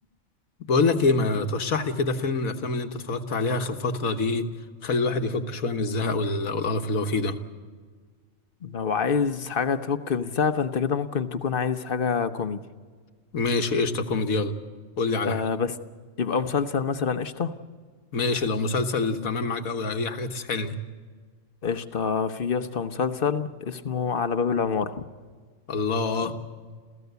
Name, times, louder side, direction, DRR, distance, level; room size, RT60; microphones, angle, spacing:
voice 1, 0.6-4.5 4.8-7.4 13.3-14.5 15.0-15.4 18.1-20.7 25.7-26.4, left 3 dB, 85° left, 7 dB, 1.8 m, -26 dB
voice 2, 8.6-12.6 15.2-15.7 16.2-17.5 21.6-25.0, left 6 dB, 45° left, 10 dB, 1.1 m, -26 dB
28.0 x 16.0 x 8.2 m, 1.5 s
omnidirectional pair, 1.4 m